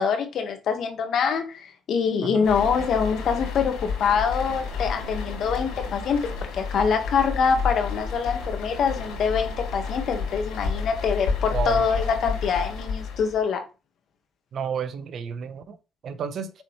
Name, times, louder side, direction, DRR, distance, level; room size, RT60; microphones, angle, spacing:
voice 1, 0.0-13.6, left 6 dB, 65° left, 1.8 m, -25 dB
sound 1, 2.4-13.5, left 5 dB, 85° left, 3.9 m, -31 dB
voice 2, 11.5-11.8 14.5-15.8 16.0-16.5, right 7 dB, 60° right, 1.0 m, -31 dB
7.7 x 4.4 x 3.3 m
cardioid pair, 80°, 0 cm